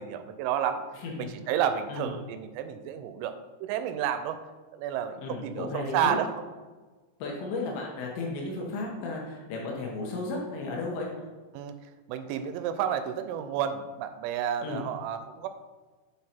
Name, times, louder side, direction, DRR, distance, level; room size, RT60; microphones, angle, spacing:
voice 1, 0.0-0.9 1.2-3.3 3.6-4.4 4.7-6.3 11.5-11.8 12.1-15.5, right 9 dB, 85° right, 9 dB, 3.0 m, -31 dB
voice 2, 5.2-6.2 7.2-11.1 14.6-14.8, left 3 dB, 75° left, -1 dB, 3.2 m, -34 dB
8.6 x 3.9 x 4.3 m, 1.3 s
omnidirectional pair, 5.6 m